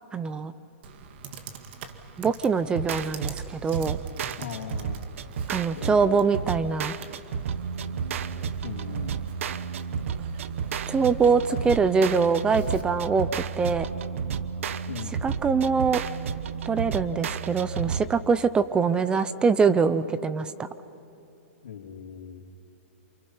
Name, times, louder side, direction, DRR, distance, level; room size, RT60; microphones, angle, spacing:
voice 1, 0.1-0.5 2.2-4.0 5.5-6.9 10.9-13.3 13.6-13.9 15.2-16.0 16.7-20.7, right 5 dB, 10° right, 13 dB, 0.6 m, -23 dB
Computer keyboard, 0.8-12.8, right 5 dB, 50° right, 1.9 m, -45 dB
sound 1, 2.7-18.1, right 7 dB, 70° right, 1.0 m, -32 dB
voice 2, 4.4-5.0 5.7-6.5 8.6-9.2 14.9-15.2 21.6-22.4, left 8 dB, 80° left, 2 dB, 2.8 m, -39 dB
29.0 x 27.5 x 5.6 m, 2.8 s
hypercardioid pair, 150°, 7 cm